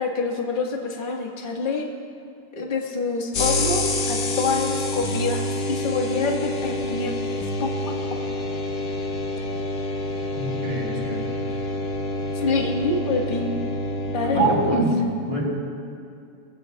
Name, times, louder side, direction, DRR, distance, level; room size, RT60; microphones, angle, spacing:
voice 1, 0.0-1.9 2.6-7.1 7.6-7.9 12.3-13.5 14.1-14.8, left 4 dB, 30° left, 0 dB, 1.2 m, -26 dB
sound 1, 3.3-14.7, left 2 dB, 55° left, 1.3 m, -27 dB
voice 2, 10.3-11.2 11.5-11.6 14.3-14.9 15.3-15.4, right 2 dB, 75° right, -5 dB, 4.5 m, -24 dB
23.0 x 16.0 x 2.3 m, 2.4 s
omnidirectional pair, 2.4 m